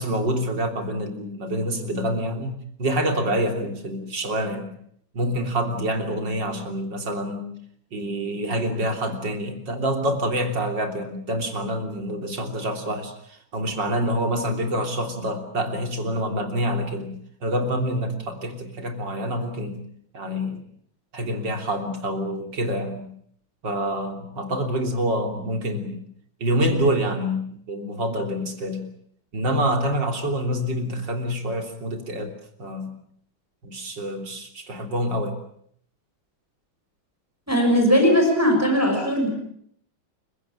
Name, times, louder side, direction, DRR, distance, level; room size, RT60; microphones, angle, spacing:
voice 1, 0.0-4.8 5.1-7.5 7.9-19.8 20.1-20.6 21.1-23.1 23.6-26.0 26.4-28.8 29.3-32.3 32.6-32.9 33.6-35.4, equal, 65° right, 5 dB, 4.0 m, -27 dB
voice 2, 37.5-39.3, equal, 5° right, 2 dB, 6.2 m, -19 dB
28.5 x 16.5 x 9.0 m, 0.66 s
omnidirectional pair, 2.1 m